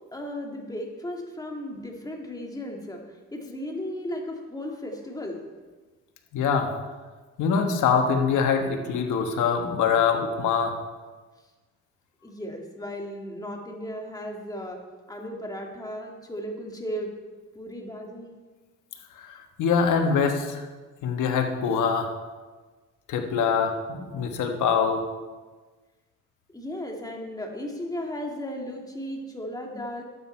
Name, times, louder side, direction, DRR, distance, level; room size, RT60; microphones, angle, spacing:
voice 1, 0.1-3.0 3.3-5.4 12.2-14.8 15.1-17.1 17.6-18.3 26.5-30.0, equal, 10° left, 1 dB, 2.0 m, -35 dB
voice 2, 6.3-6.7 7.4-10.7 19.2-20.6 21.0-22.1 23.1-25.0, left 6 dB, 80° left, 4 dB, 1.4 m, -24 dB
12.0 x 8.2 x 4.4 m, 1.3 s
cardioid pair, 90°, 30 cm